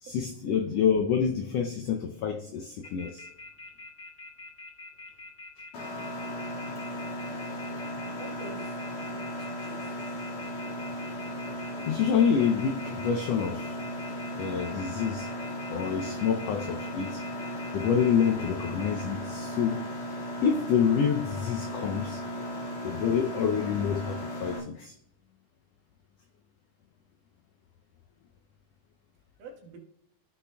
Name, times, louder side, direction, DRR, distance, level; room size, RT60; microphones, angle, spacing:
voice 1, 0.0-3.2 10.4-10.5 11.9-13.8 14.4-15.3 15.7-17.2 17.7-19.8 20.4-22.2 22.8-24.9, left 7 dB, 85° left, 1.4 m, -27 dB
sound 1, 2.8-19.0, left 2 dB, 35° left, 2.2 m, -45 dB
Mechanisms, 5.7-24.6, equal, 60° left, 3.1 m, -36 dB
voice 2, 8.2-8.8 9.1-9.9 29.4-29.8, right 3 dB, 85° right, 3.0 m, -46 dB
15.5 x 6.3 x 2.2 m
omnidirectional pair, 3.6 m